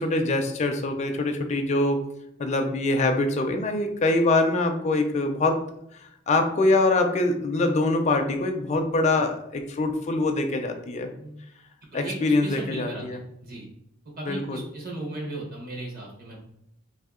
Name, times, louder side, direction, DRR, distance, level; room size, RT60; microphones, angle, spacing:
voice 1, 0.0-2.0 2.4-5.6 6.3-11.1 11.9-13.2 14.3-14.6, left 2 dB, 35° left, 4 dB, 0.4 m, -24 dB
voice 2, 11.9-13.7 14.2-16.4, right 2 dB, 45° right, -1 dB, 1.0 m, -36 dB
2.7 x 2.7 x 3.6 m, 0.77 s
head